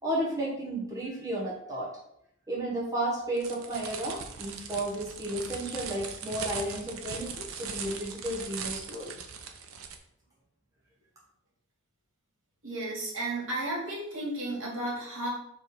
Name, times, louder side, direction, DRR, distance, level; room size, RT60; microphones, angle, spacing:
voice 1, 0.0-1.9 2.5-9.1, right 1 dB, 15° right, -6 dB, 1.3 m, -33 dB
sound 1, 3.4-10.0, right 6 dB, 85° right, 0.8 m, -40 dB
voice 2, 12.6-15.3, right 1 dB, 70° right, -4 dB, 2.6 m, -33 dB
5.1 x 3.4 x 5.5 m, 0.73 s
head